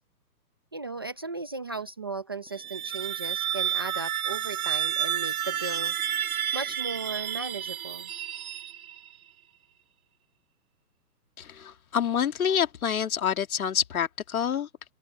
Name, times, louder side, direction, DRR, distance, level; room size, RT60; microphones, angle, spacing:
voice 1, 0.7-5.9 6.2-8.1, right 3 dB, 15° right, 0.6 m, -36 dB
sound 1, 2.5-9.1, right 10 dB, 60° right, 0.8 m, -30 dB
voice 2, 11.4-14.7, left 8 dB, 60° left, 2.4 m, -27 dB
open air
hypercardioid pair, 160°, 49 cm